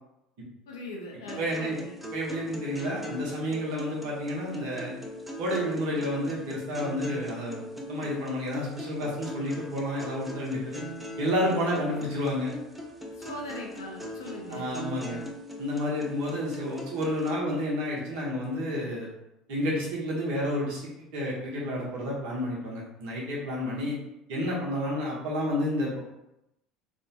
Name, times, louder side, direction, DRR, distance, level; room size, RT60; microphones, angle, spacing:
voice 1, 0.7-2.0 13.1-14.6, left 1 dB, 75° left, -1 dB, 0.5 m, -40 dB
sound 1, 1.3-17.3, left 1 dB, 5° right, 0.5 m, -40 dB
voice 2, 1.4-1.7 2.1-5.0 5.4-7.6 7.9-10.8 11.2-12.5 14.5-15.2 15.6-19.1 19.5-24.0 24.3-26.0, equal, 60° right, -4 dB, 0.9 m, -30 dB
2.6 x 2.2 x 2.7 m, 0.87 s
figure-of-eight pair, 65°, 2 cm